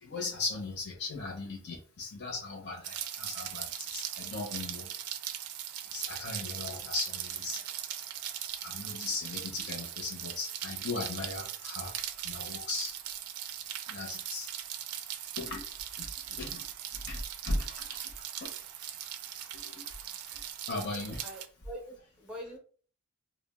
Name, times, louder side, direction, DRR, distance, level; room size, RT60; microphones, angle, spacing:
voice 1, 0.0-4.9 5.9-7.6 8.6-12.9 13.9-14.5 15.4-15.7 16.0-16.6 16.9-18.1 18.4-18.5 19.5-19.9 20.2-21.2, left 2 dB, 55° left, -1 dB, 0.7 m, -38 dB
Rain, 2.8-21.5, right 10 dB, 80° right, 0.4 m, -39 dB
voice 2, 21.2-22.6, equal, 5° right, -1 dB, 0.5 m, -44 dB
2.4 x 2.0 x 3.4 m, 0.41 s
head